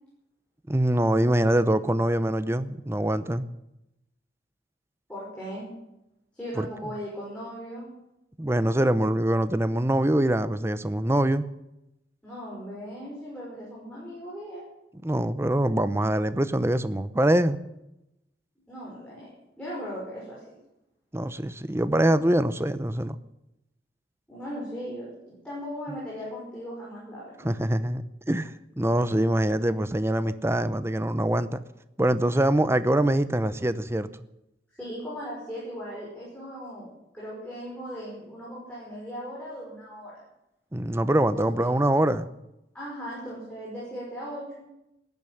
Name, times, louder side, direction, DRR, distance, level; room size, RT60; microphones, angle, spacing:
voice 1, 0.7-3.5 6.6-6.7 8.4-11.5 15.0-17.6 21.1-23.2 27.4-28.0 28.3-28.5 28.8-31.6 32.0-34.1 40.7-42.4, right 1 dB, 15° right, 13 dB, 0.7 m, -24 dB
voice 2, 5.1-5.7 6.3-7.9 12.2-14.7 18.7-19.3 19.6-20.6 24.3-27.5 34.7-40.2 41.3-41.5 42.7-44.7, equal, 5° left, -6 dB, 5.8 m, -38 dB
13.5 x 11.0 x 9.9 m, 0.89 s
head